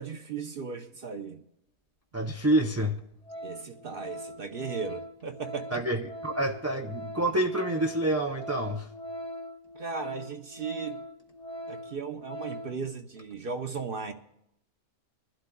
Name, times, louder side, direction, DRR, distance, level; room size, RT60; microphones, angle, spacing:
voice 1, 0.0-1.4 3.4-5.8 9.7-11.0 11.7-14.1, right 5 dB, 55° right, 6 dB, 0.9 m, -36 dB
voice 2, 2.1-3.0 5.7-8.9, right 1 dB, 20° right, 2 dB, 0.4 m, -27 dB
Organ, 2.2-2.3 2.8-3.0 3.3-12.8 13.2-13.3, equal, 35° left, 1.2 m, -41 dB
24.0 x 11.5 x 2.3 m, 0.81 s
omnidirectional pair, 1.2 m